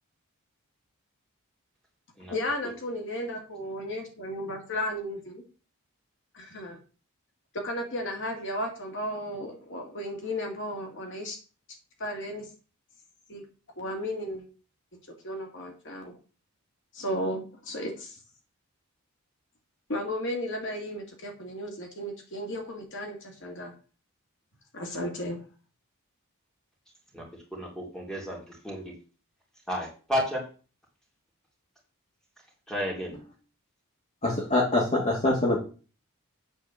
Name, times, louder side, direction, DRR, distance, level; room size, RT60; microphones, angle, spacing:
voice 1, 2.3-5.4 6.3-6.8 7.5-11.4 12.0-12.5 13.3-13.4 13.8-14.5 15.2-16.1 16.9-18.2 19.9-23.7 24.7-25.4, left 1 dB, 55° left, 2 dB, 2.2 m, -34 dB
voice 2, 27.5-28.8 29.7-30.4 32.7-33.2, equal, 5° left, -2 dB, 2.9 m, -32 dB
voice 3, 34.2-35.6, left 2 dB, 30° left, -4 dB, 1.9 m, -24 dB
8.3 x 4.4 x 6.9 m, 0.36 s
head